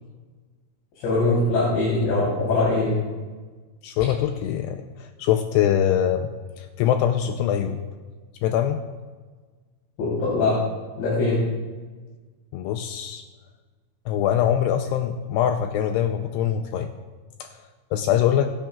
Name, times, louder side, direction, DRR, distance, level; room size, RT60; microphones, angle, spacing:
voice 1, 1.0-3.0 10.0-10.5 11.0-11.4, left 2 dB, 65° left, -7 dB, 5.4 m, -22 dB
voice 2, 3.8-6.3 6.6-7.8 8.4-8.8 12.5-13.2 14.1-16.9 17.4-17.5 17.9-18.5, left 10 dB, 90° left, 6 dB, 2.4 m, -23 dB
22.5 x 10.5 x 2.4 m, 1.4 s
omnidirectional pair, 5.4 m